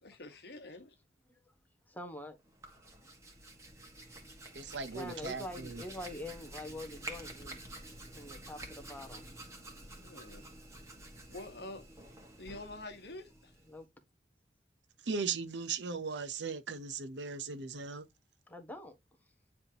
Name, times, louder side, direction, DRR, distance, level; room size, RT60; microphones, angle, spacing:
voice 1, 0.0-0.9 10.0-10.5 11.3-11.9 12.4-13.5, left 2 dB, 65° left, 1.4 m, -47 dB
voice 2, 1.9-2.4 4.4-7.6 8.1-9.4 13.7-13.9 18.5-19.0, left 1 dB, 10° left, 1.3 m, -45 dB
Hands, 2.4-13.8, right 1 dB, 15° right, 1.6 m, -49 dB
voice 3, 4.5-5.8 15.0-18.1, right 5 dB, 85° right, 0.8 m, -38 dB
9.5 x 3.6 x 2.9 m
head